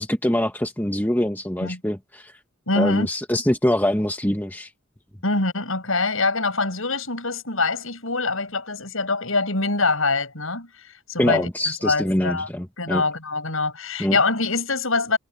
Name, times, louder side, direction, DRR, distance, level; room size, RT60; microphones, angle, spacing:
voice 1, 0.0-2.3 2.8-4.7 11.2-13.0 14.0-14.2, left 1 dB, 10° left, 1.2 m, -24 dB
voice 2, 2.7-3.1 5.2-11.5 11.8-12.5 12.8-15.2, left 3 dB, 70° left, 6.4 m, -24 dB
head